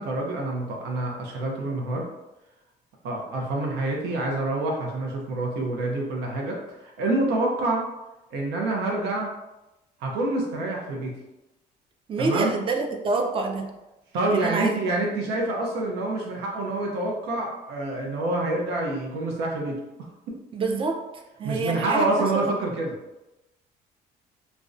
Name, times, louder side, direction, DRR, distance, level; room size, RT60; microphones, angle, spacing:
voice 1, 0.0-2.1 3.0-7.9 8.3-9.3 10.0-11.2 12.2-12.5 14.1-20.4 21.4-23.0, right 2 dB, 85° right, -1 dB, 0.5 m, -27 dB
voice 2, 12.1-13.7 14.3-14.8 20.5-22.1 22.3-22.5, right 3 dB, 30° right, 3 dB, 0.4 m, -27 dB
2.4 x 2.1 x 2.4 m, 0.97 s
cardioid pair, 110°, 17 cm